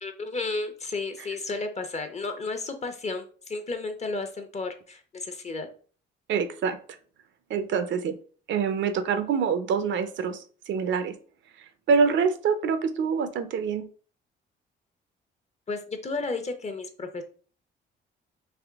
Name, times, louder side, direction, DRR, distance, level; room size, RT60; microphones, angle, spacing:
voice 1, 0.0-5.7 15.7-17.2, left 3 dB, 35° left, 6 dB, 0.8 m, -33 dB
voice 2, 6.3-6.8 7.5-8.2 8.5-11.2 11.9-13.9, right 6 dB, 70° right, 11 dB, 0.6 m, -25 dB
3.5 x 3.1 x 3.5 m, 0.42 s
cardioid pair, 90°, 20 cm